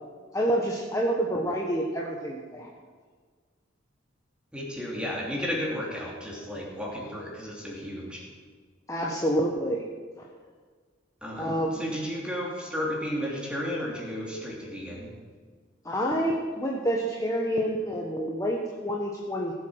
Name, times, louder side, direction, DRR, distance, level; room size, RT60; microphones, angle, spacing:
voice 1, 0.3-2.7 8.9-9.8 10.2-10.3 11.4-11.9 15.8-19.5, equal, 15° left, -2 dB, 1.1 m, -28 dB
voice 2, 4.5-8.2 11.2-15.1, equal, 5° right, -2 dB, 2.8 m, -33 dB
18.5 x 7.7 x 6.4 m, 1.5 s
head